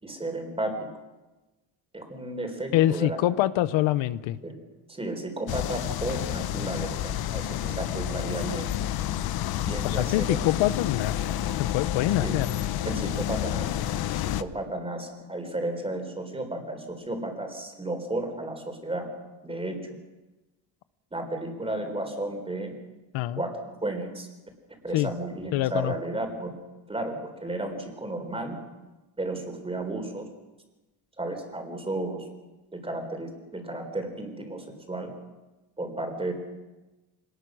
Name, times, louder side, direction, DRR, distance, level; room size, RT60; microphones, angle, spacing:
voice 1, 0.0-0.9 1.9-3.2 4.4-4.6 4.9-8.7 9.7-10.4 12.2-12.4 12.9-19.1 19.4-20.0 21.1-22.7 23.4-24.3 24.8-26.6 26.9-28.6 29.2-30.3 31.2-32.3 32.7-35.1 35.8-36.3, right 2 dB, 10° right, 5 dB, 4.0 m, -33 dB
voice 2, 2.7-4.4 9.8-12.5 23.1-23.4 24.9-25.1 25.5-25.9, left 14 dB, 90° left, 15 dB, 1.0 m, -25 dB
sound 1, 5.5-14.4, left 12 dB, 55° left, 0.8 m, -29 dB
25.5 x 19.5 x 6.3 m, 1.1 s
cardioid pair, 155°, 45 cm